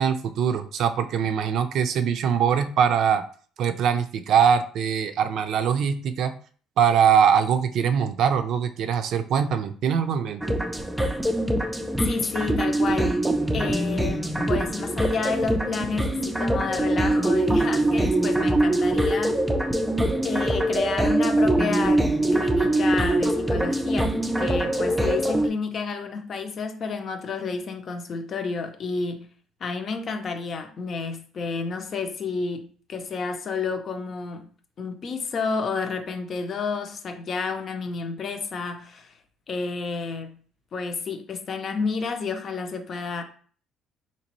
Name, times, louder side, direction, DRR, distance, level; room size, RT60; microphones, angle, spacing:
voice 1, 0.0-3.2 3.6-6.4 6.8-10.6, right 7 dB, 65° right, 0.4 m, -22 dB
sound 1, 10.4-25.5, right 1 dB, 5° right, 0.4 m, -23 dB
voice 2, 12.0-13.2 13.5-19.4 20.2-22.0 22.3-29.3 29.6-34.5 34.8-39.1 39.5-40.4 40.7-43.2, left 4 dB, 45° left, 0.7 m, -30 dB
4.0 x 2.9 x 3.0 m
cardioid pair, 115°, 0 cm